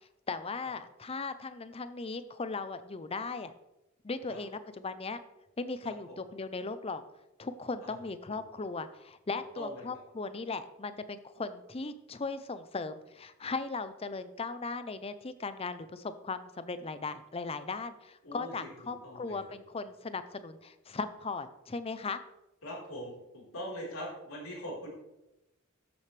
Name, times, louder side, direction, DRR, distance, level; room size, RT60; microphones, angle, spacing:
voice 1, 0.3-3.5 4.0-5.2 5.6-7.0 7.4-22.2, left 4 dB, 30° left, 12 dB, 0.6 m, -38 dB
voice 2, 9.6-9.9 18.2-18.7 19.0-19.4 22.6-24.9, equal, 80° left, -4 dB, 4.2 m, -42 dB
13.0 x 7.6 x 3.3 m, 0.93 s
head